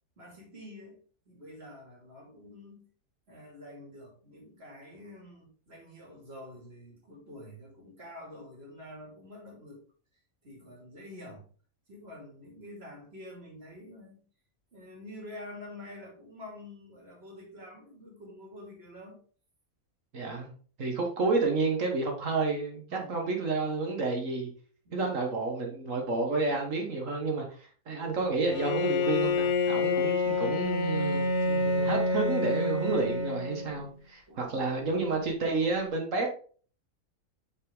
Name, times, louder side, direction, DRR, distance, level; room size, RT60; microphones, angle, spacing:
voice 1, 0.2-1.0 1.3-2.9 3.3-9.8 10.4-11.4 11.9-14.2 14.7-19.2 22.9-23.3 24.8-25.3 34.3-34.8, left 1 dB, 45° right, 0 dB, 2.6 m, -47 dB
voice 2, 20.1-20.5 20.8-22.8 23.1-24.5 24.9-36.4, right 3 dB, 60° right, 2 dB, 1.7 m, -30 dB
Bowed string instrument, 28.5-33.9, left 3 dB, 55° left, 1.4 m, -28 dB
5.9 x 5.7 x 3.6 m, 0.41 s
omnidirectional pair, 1.5 m